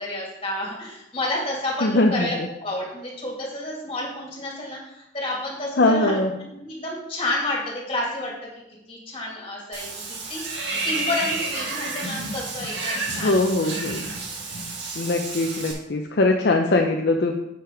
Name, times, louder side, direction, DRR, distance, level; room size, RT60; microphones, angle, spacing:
voice 1, 0.0-8.5 8.9-13.4, left 1 dB, 30° left, -3 dB, 2.4 m, -30 dB
voice 2, 1.8-2.3 5.8-6.3 13.2-14.0 15.0-17.3, left 2 dB, 55° left, 2 dB, 0.6 m, -21 dB
Water / Bathtub (filling or washing), 9.7-15.7, right 3 dB, 60° right, 1.8 m, -30 dB
7.5 x 5.8 x 4.9 m, 0.88 s
head